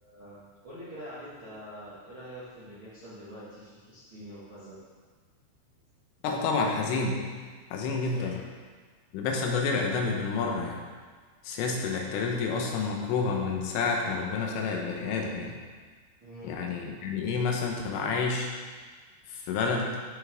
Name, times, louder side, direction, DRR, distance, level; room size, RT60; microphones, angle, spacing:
voice 1, 0.0-4.8 8.1-8.4 16.2-16.5, equal, 50° right, -12 dB, 1.5 m, -45 dB
voice 2, 6.2-7.3 7.7-8.4 9.1-10.8 11.4-15.6 16.4-18.5 19.3-19.9, left 4 dB, 90° left, 1 dB, 3.8 m, -29 dB
15.0 x 5.9 x 3.7 m, 1.5 s
omnidirectional pair, 5.6 m